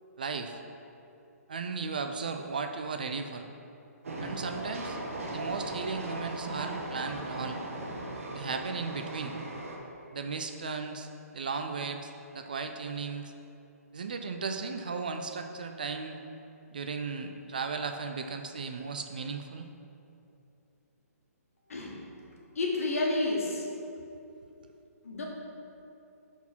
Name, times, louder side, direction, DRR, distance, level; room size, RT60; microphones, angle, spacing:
voice 1, 0.2-0.6 1.5-3.5 4.2-5.0 5.3-7.6 8.3-9.4 10.1-11.1 11.3-13.3 13.9-16.2 16.7-19.7 24.0-24.1, right 4 dB, 30° right, 6 dB, 0.3 m, -36 dB
Train, 4.0-9.8, right 1 dB, 55° right, 1.4 m, -38 dB
voice 2, 22.5-23.7 25.0-25.2, left 2 dB, 60° left, -2 dB, 1.7 m, -30 dB
11.5 x 4.2 x 4.4 m, 2.8 s
hypercardioid pair, 180°, 9 cm